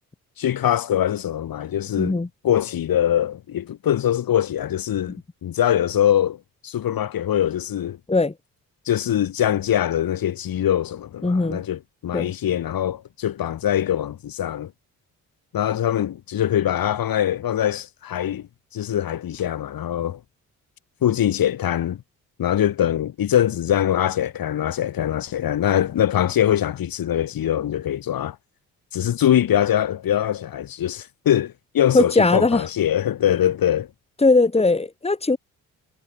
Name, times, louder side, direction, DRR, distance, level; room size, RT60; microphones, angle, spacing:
voice 1, 0.4-6.4 6.6-8.0 8.9-14.7 15.5-20.2 21.0-22.0 22.4-28.4 28.9-33.9, left 11 dB, 70° left, 2.9 m, -23 dB
voice 2, 2.0-2.3 8.1-8.3 11.2-11.6 12.1-12.3 31.9-32.7 34.2-35.4, left 3 dB, 15° left, 1.9 m, -19 dB
supercardioid pair, 60°, 36 cm